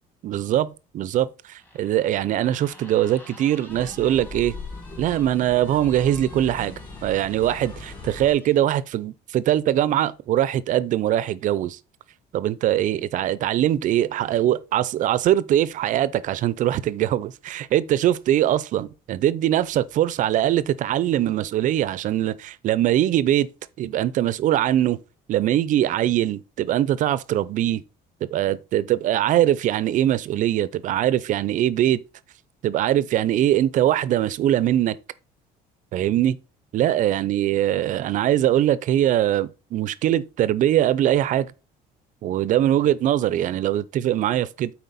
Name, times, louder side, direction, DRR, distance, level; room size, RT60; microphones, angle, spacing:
voice 1, 0.2-4.5 5.0-6.7 7.0-11.8 12.3-23.5 23.8-25.0 25.3-27.8 28.2-32.0 32.6-35.0 35.9-36.4 36.7-41.5 42.2-44.7, right 12 dB, 50° right, 0.5 m, -22 dB
sound 1, 1.6-8.7, left 1 dB, 10° left, 1.4 m, -49 dB
sound 2, 3.7-8.3, left 3 dB, 30° left, 3.3 m, -39 dB
9.3 x 4.2 x 4.1 m
cardioid pair, 145°, 17 cm